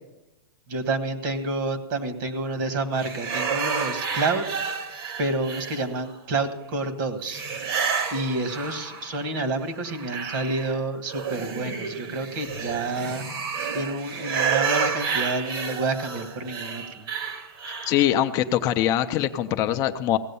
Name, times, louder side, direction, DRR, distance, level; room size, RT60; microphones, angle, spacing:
voice 1, 0.7-4.5 5.2-7.4 8.1-13.2 13.7-17.1, right 3 dB, 50° right, 9 dB, 1.5 m, -29 dB
sound 1, 3.0-6.1 7.2-9.2 9.6-18.1, right 6 dB, 65° right, 1.9 m, -30 dB
voice 2, 17.7-20.2, left 12 dB, 30° left, 8 dB, 0.5 m, -23 dB
16.5 x 7.7 x 6.9 m, 0.97 s
supercardioid pair, 155°, 13 cm